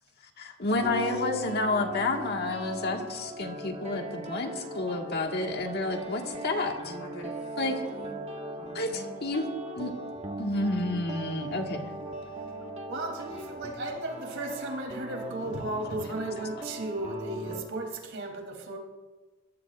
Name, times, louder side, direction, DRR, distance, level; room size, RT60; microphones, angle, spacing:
voice 1, 0.4-7.0 7.6-7.7 8.7-9.4 9.7-9.9 10.4-11.8, left 2 dB, 50° left, 2 dB, 1.7 m, -30 dB
sound 1, 0.7-17.6, right 1 dB, 30° right, 1.4 m, -39 dB
voice 2, 6.8-8.2 8.6-9.2, equal, 85° left, 1 dB, 3.5 m, -45 dB
voice 3, 12.9-18.8, right 1 dB, 60° right, 1 dB, 3.1 m, -35 dB
22.5 x 15.5 x 2.5 m, 1.3 s
head